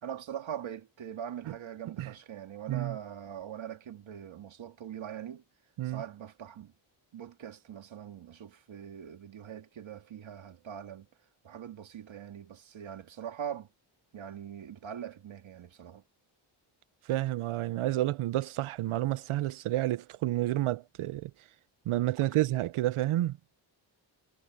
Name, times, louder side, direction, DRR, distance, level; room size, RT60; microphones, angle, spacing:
voice 1, 0.0-5.4 5.8-6.7 7.1-11.1 11.4-13.7 14.1-16.0 22.2-22.3, right 9 dB, 70° right, 2.0 m, -42 dB
voice 2, 17.1-21.3 21.9-23.4, right 15 dB, 85° right, 0.7 m, -30 dB
wide cardioid pair, 130°, 49 cm